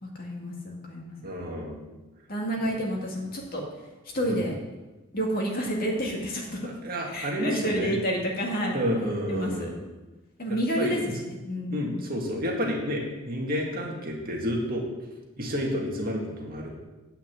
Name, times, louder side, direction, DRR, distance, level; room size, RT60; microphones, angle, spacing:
voice 1, 0.0-1.1 2.3-3.6 4.1-4.5 5.1-6.7 7.1-8.8 9.3-9.7 10.4-11.0 11.4-11.8, equal, 40° left, -1 dB, 2.2 m, -29 dB
voice 2, 1.2-1.8 2.6-2.8 4.3-4.4 6.6-7.9 8.7-9.8 10.5-11.2 11.7-14.8 15.4-16.7, equal, 40° right, -1 dB, 2.2 m, -30 dB
9.1 x 5.8 x 8.3 m, 1.1 s
head